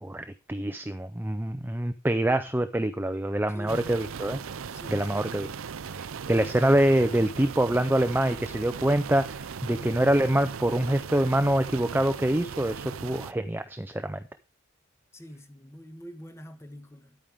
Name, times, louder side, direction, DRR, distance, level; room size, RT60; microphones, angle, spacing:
voice 1, 0.0-4.4 4.9-5.5 5.9-14.2, right 1 dB, 10° right, 0.5 m, -25 dB
voice 2, 3.5-3.9 4.7-5.3 15.1-17.2, equal, 15° left, 1.2 m, -45 dB
sound 1, 3.7-13.3, right 6 dB, 90° right, 0.5 m, -38 dB
10.5 x 9.0 x 3.5 m
head